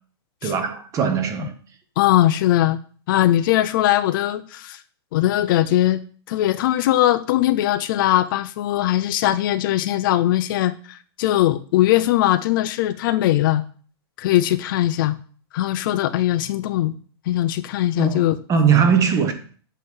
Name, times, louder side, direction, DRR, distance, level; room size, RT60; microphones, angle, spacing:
voice 1, 0.4-1.5 18.0-19.3, right 6 dB, 25° right, 1.0 m, -20 dB
voice 2, 2.0-2.8 3.1-4.8 5.1-6.0 6.3-13.6 14.2-15.2 15.5-16.9 17.3-18.4, left 14 dB, 55° left, 0.5 m, -20 dB
7.9 x 3.2 x 5.4 m
hypercardioid pair, 140°, 14 cm